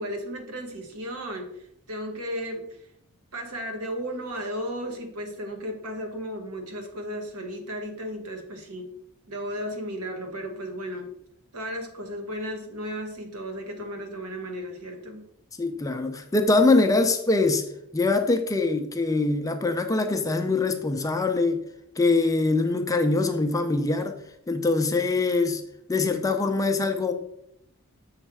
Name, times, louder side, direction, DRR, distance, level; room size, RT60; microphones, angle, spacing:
voice 1, 0.0-2.9 3.3-8.9 9.3-11.1 11.5-15.2, equal, 90° right, 1.3 m, -34 dB
voice 2, 15.6-17.6 17.9-21.6 22.0-24.2 24.5-25.6 25.9-27.1, left 3 dB, 15° left, 0.4 m, -23 dB
7.2 x 3.3 x 4.6 m
head